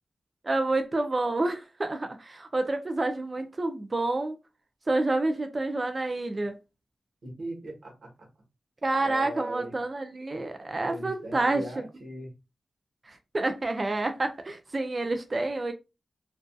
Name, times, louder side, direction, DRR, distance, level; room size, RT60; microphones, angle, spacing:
voice 1, 0.4-4.4 4.9-6.6 8.8-11.6 13.1-15.7, right 2 dB, 35° right, 0.4 m, -28 dB
voice 2, 7.2-8.3 9.0-9.7 10.9-12.3, right 1 dB, 75° right, 1.0 m, -39 dB
2.6 x 2.3 x 2.2 m
wide cardioid pair, 110°, 0 cm